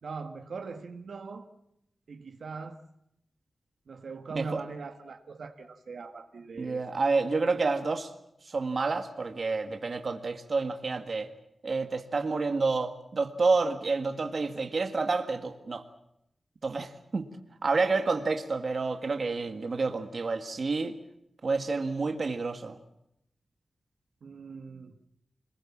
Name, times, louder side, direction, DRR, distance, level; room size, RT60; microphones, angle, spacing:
voice 1, 0.0-1.5 2.1-2.8 3.9-6.9 24.2-24.9, right 4 dB, 70° right, 6 dB, 1.7 m, -41 dB
voice 2, 6.6-8.1 8.4-11.3 11.6-15.9 16.6-17.3 17.6-21.0 21.4-22.8, right 3 dB, 45° right, 7 dB, 1.8 m, -29 dB
26.5 x 20.5 x 7.3 m, 0.79 s
wide cardioid pair, 150°, 0 cm